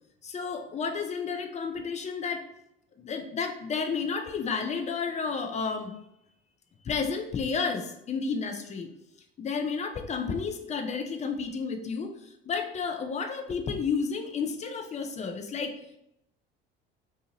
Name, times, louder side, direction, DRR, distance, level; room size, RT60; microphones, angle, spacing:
voice 1, 0.2-2.5 3.0-5.9 6.8-8.9 9.4-15.7, left 5 dB, 25° left, 5 dB, 0.4 m, -31 dB
2.7 x 2.4 x 2.8 m, 0.81 s
hypercardioid pair, 60°, 29 cm